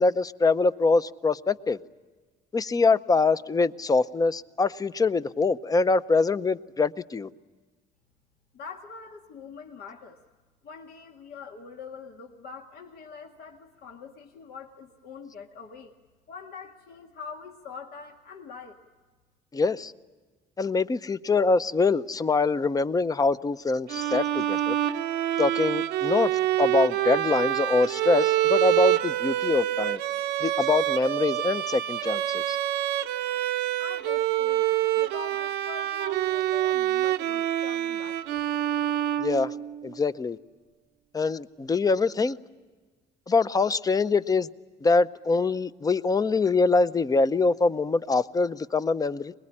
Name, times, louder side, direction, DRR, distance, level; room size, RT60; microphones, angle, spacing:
voice 1, 0.0-1.8 2.5-7.3 19.5-19.9 20.6-24.8 25.4-26.3 26.6-30.0 30.4-32.6 39.2-39.5 39.8-40.4 41.1-42.4 43.3-44.5 44.8-49.3, left 3 dB, 20° left, 0.7 m, -24 dB
voice 2, 8.5-10.2 10.6-15.9 16.3-18.8 33.8-34.6 35.0-38.5, left 5 dB, 65° left, 1.9 m, -43 dB
Bowed string instrument, 23.9-39.9, right 13 dB, 90° right, 0.9 m, -26 dB
24.0 x 21.0 x 9.9 m
cardioid pair, 110°, 17 cm